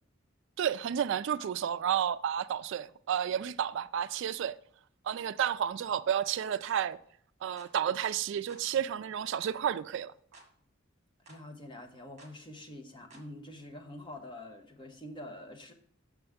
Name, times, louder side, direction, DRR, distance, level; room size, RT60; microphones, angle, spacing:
voice 1, 0.6-4.6 5.1-7.0 7.4-10.1, right 9 dB, 65° right, 0.3 m, -31 dB
sound 1, 6.6-6.8 7.6-7.8 8.5-8.7 9.4-9.6 10.3-10.5 11.3-11.4 12.2-12.4 13.1-13.3, right 2 dB, 35° right, 1.4 m, -55 dB
voice 2, 11.3-15.7, left 1 dB, 25° left, 0.9 m, -46 dB
6.8 x 6.2 x 3.5 m
head